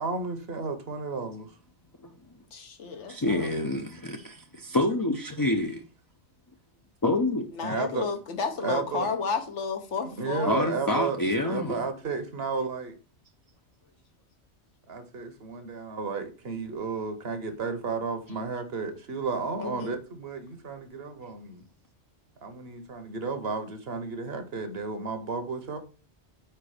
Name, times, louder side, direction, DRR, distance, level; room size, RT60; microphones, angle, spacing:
voice 1, 0.0-1.5 7.6-8.1 8.6-9.1 10.2-13.0 14.9-21.6 22.4-25.8, right 4 dB, 60° right, 1.2 m, -33 dB
voice 2, 2.5-3.5 7.5-10.6 11.5-11.8 19.6-19.9, left 5 dB, 85° left, 1.3 m, -32 dB
voice 3, 3.1-5.8 7.0-7.5 10.5-11.8, left 1 dB, 30° left, 0.4 m, -27 dB
4.8 x 4.5 x 4.9 m
omnidirectional pair, 1.2 m